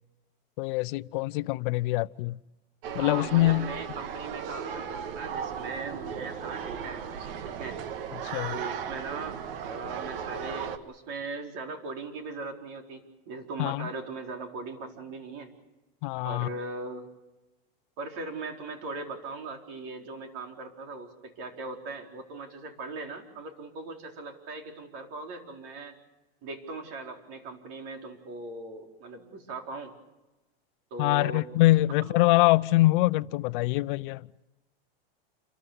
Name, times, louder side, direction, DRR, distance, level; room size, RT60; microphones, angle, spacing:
voice 1, 0.6-2.4 2.9-3.7 8.2-8.6 13.6-13.9 16.0-16.5 31.0-34.3, left 18 dB, 60° left, 0.7 m, -24 dB
sound 1, 2.8-10.8, right 7 dB, 75° right, 1.7 m, -36 dB
voice 2, 2.9-7.8 8.5-15.5 16.2-17.0 18.0-25.9 26.4-29.9 30.9-31.4 32.0-32.1, right 3 dB, 50° right, 4.4 m, -39 dB
29.0 x 14.0 x 9.6 m
supercardioid pair, 145°, 29 cm